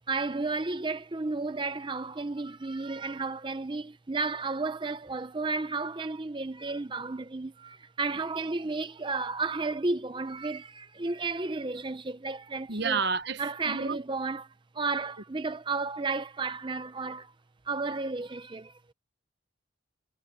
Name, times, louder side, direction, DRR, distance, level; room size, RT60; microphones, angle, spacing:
voice 1, 0.1-13.0 13.4-17.3 17.7-18.9, right 3 dB, 25° right, 0.6 m, -33 dB
voice 2, 12.7-14.0, right 5 dB, 55° right, 1.0 m, -30 dB
head